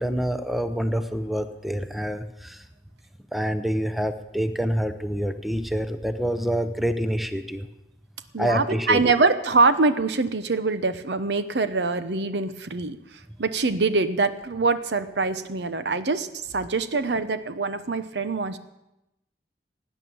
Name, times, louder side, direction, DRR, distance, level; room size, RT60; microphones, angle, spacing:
voice 1, 0.0-2.6 3.3-7.7 8.4-9.0, equal, ahead, 10 dB, 0.7 m, -27 dB
voice 2, 8.3-13.0 13.4-16.3 16.5-18.6, right 3 dB, 75° right, 12 dB, 0.9 m, -24 dB
17.0 x 9.2 x 7.0 m, 0.92 s
head